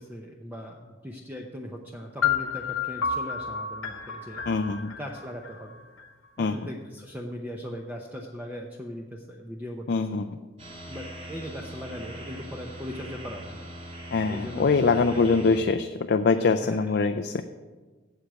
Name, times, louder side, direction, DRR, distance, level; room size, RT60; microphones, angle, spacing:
voice 1, 0.0-4.4 5.0-5.8 6.4-10.2 10.9-13.7 14.3-15.6 16.4-16.9, equal, 10° right, 1 dB, 0.7 m, -39 dB
sound 1, 2.2-6.1, left 6 dB, 85° left, 0.9 m, -30 dB
voice 2, 4.5-4.9 6.4-6.5 9.9-10.3 14.1-17.4, left 4 dB, 50° left, 8 dB, 0.4 m, -23 dB
sound 2, 10.6-15.6, equal, 30° right, 1.9 m, -41 dB
8.2 x 7.6 x 8.0 m, 1.3 s
head